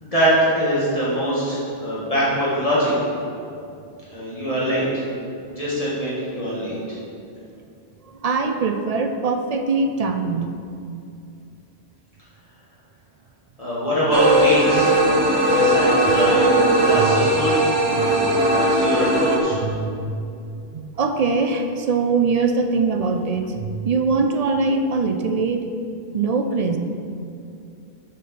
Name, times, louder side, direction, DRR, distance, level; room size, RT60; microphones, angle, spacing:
voice 1, 0.0-2.9 4.1-5.0 5.5-6.7 13.6-14.9 15.5-17.6 18.5-19.6, equal, 35° left, -9 dB, 1.9 m, -22 dB
voice 2, 8.0-10.5 14.7-14.8 16.9-17.4 18.0-18.3 19.5-20.2 20.7-25.7 26.1-26.8, right 4 dB, 50° right, 6 dB, 0.5 m, -22 dB
sound 1, 14.1-19.4, right 1 dB, 80° right, 1.2 m, -18 dB
6.5 x 5.1 x 5.9 m, 2.5 s
omnidirectional pair, 1.1 m